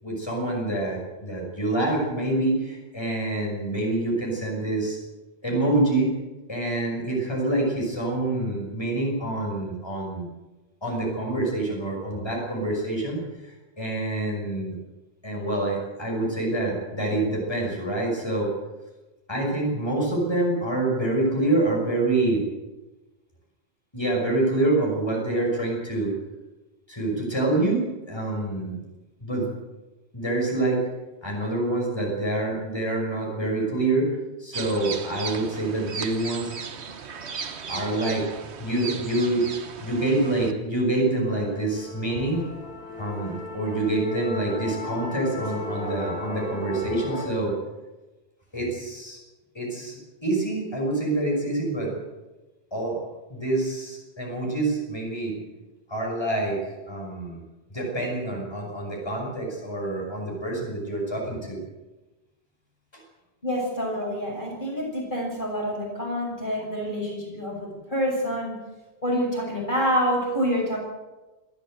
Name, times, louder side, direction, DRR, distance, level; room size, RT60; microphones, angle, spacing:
voice 1, 0.0-5.0 5.4-6.1 6.5-10.3 10.8-14.8 15.2-18.5 19.3-22.4 23.9-26.1 26.9-28.8 29.2-29.5 30.1-30.8 31.2-34.1 34.4-36.5 37.7-38.3 38.6-39.4 39.8-42.4 43.0-47.5 48.5-49.2 49.5-52.0 52.7-53.0 53.3-55.4 55.9-57.4 57.7-61.6, right 2 dB, 25° left, -1 dB, 6.3 m, -26 dB
sound 1, 34.5-40.5, right 6 dB, 85° right, 1.4 m, -36 dB
Musical instrument, 41.3-47.3, left 2 dB, 60° right, 6.5 m, -35 dB
voice 2, 63.4-68.5 69.0-70.8, equal, 50° left, -1 dB, 6.7 m, -27 dB
26.0 x 13.5 x 8.0 m, 1.1 s
omnidirectional pair, 1.1 m